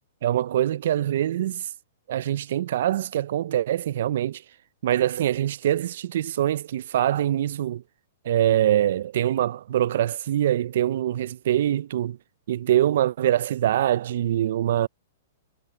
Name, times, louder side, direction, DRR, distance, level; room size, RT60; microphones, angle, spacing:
voice 1, 0.2-1.6 2.1-4.4 4.8-7.8 8.3-12.2 12.5-14.9, right 12 dB, 60° right, 0.4 m, -24 dB
hypercardioid pair, 155°, 0 cm